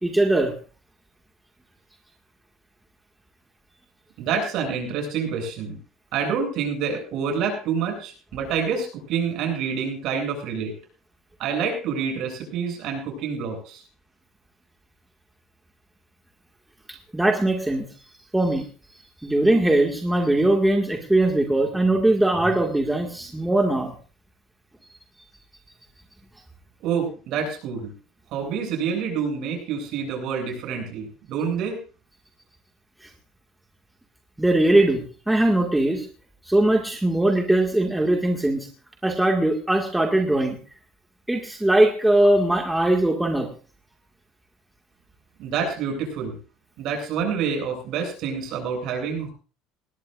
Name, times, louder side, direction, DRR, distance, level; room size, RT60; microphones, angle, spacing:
voice 1, 0.0-0.5 17.1-17.9 18.3-18.7 19.2-23.9 34.4-36.1 36.5-38.7 39.0-40.6 41.3-43.5, right 1 dB, 5° right, 2 dB, 2.0 m, -20 dB
voice 2, 4.2-5.8 6.1-10.7 11.4-13.8 26.8-27.9 28.3-31.8 45.4-46.4 46.8-49.3, right 6 dB, 60° right, 3 dB, 7.8 m, -27 dB
19.5 x 17.5 x 2.6 m, 0.38 s
supercardioid pair, 120°, 0 cm